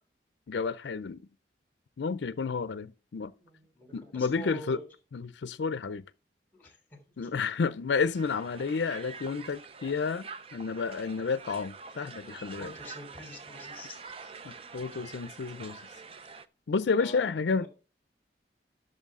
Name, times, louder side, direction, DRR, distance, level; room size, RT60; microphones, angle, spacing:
voice 1, 0.5-1.3 2.0-3.3 3.9-4.8 5.1-6.0 7.2-12.7 14.4-15.8 16.7-17.7, left 5 dB, 80° left, 0.4 m, -31 dB
voice 2, 3.4-4.8 6.5-6.8 12.2-14.0 17.0-17.3 17.6-17.7, equal, 10° left, 3.3 m, -46 dB
Crowd, 8.1-16.5, right 5 dB, 30° right, 0.4 m, -46 dB
12.0 x 6.8 x 3.6 m
head